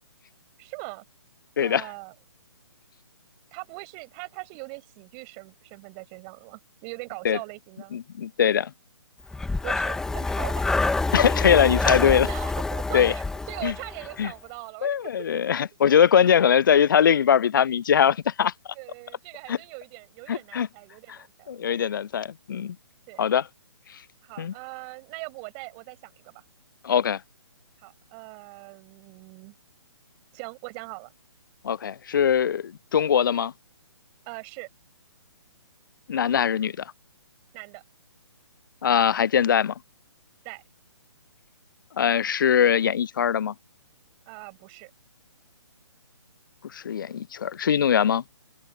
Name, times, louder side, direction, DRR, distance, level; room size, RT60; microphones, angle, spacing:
voice 1, 0.6-1.1 1.6-2.1 3.5-8.0 9.6-10.6 12.0-15.3 18.7-21.8 23.1-23.3 24.2-26.4 27.8-29.5 30.3-31.1 34.3-34.7 37.5-37.8 40.4-40.6 44.3-44.9, right 40 dB or more, 25° right, 5.8 m, -41 dB
voice 2, 1.6-1.9 7.2-7.4 7.9-8.7 11.1-12.3 12.9-13.1 13.6-13.7 14.2-14.3 14.8-18.5 19.5-19.6 20.3-20.7 21.1-21.2 21.5-22.8 23.2-23.4 24.4-24.5 26.8-27.2 31.6-33.5 36.1-36.8 38.8-39.7 42.0-43.5 46.7-48.2, left 8 dB, 45° left, 0.5 m, -21 dB
Breathing, 9.3-14.2, left 3 dB, 5° left, 1.9 m, -27 dB
figure-of-eight pair, 135°, 15 cm